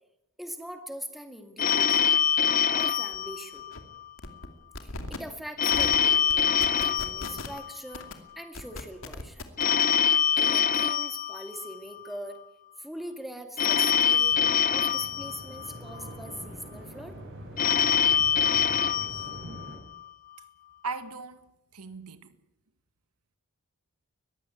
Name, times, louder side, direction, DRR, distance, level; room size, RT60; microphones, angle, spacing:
voice 1, 0.4-2.2 2.7-3.7 4.8-9.5 10.4-12.4 12.8-17.2, equal, ahead, 2.2 m, -42 dB
Telephone, 1.6-4.1 5.6-8.1 9.6-12.1 13.6-16.1 17.6-20.1, left 8 dB, 40° left, 0.7 m, -25 dB
sound 1, 3.1-3.2 3.5-3.8 4.2-4.5 4.7-5.2 5.7-6.0 6.3-7.6 7.9-8.1 8.5-9.6, left 2 dB, 60° left, 2.5 m, -38 dB
sound 2, 13.9-19.8, right 1 dB, 60° right, 7.5 m, -44 dB
voice 2, 20.8-22.4, right 4 dB, 90° right, 1.7 m, -39 dB
21.0 x 15.5 x 9.4 m
head